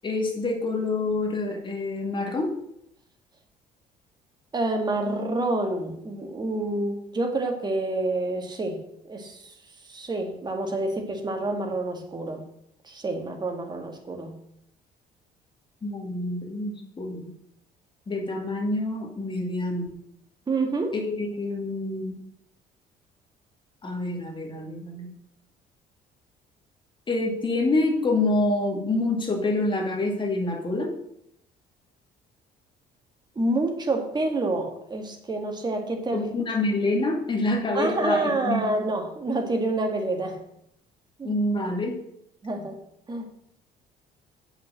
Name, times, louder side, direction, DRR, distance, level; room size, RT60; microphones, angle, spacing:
voice 1, 0.0-2.6 15.8-17.3 18.1-19.9 20.9-22.2 23.8-25.1 27.1-30.9 36.1-38.7 41.2-42.0, left 2 dB, 30° left, 2 dB, 2.4 m, -27 dB
voice 2, 4.5-8.8 9.0-9.5 9.9-12.4 12.8-14.4 20.5-20.9 33.4-36.3 37.7-40.4 41.2-41.3 42.4-42.8 43.1-43.2, right 2 dB, 25° right, 3 dB, 1.9 m, -28 dB
8.2 x 5.9 x 6.5 m, 0.75 s
cardioid pair, 110°, 17 cm